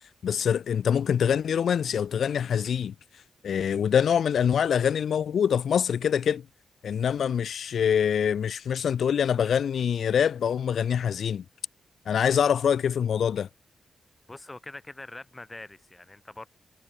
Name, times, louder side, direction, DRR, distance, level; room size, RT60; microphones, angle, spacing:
voice 1, 0.0-6.4 6.8-11.4 12.1-13.5, left 8 dB, 65° left, 0.6 m, -25 dB
voice 2, 14.3-16.5, left 2 dB, 15° left, 4.5 m, -43 dB
wide cardioid pair, 175°, 0 cm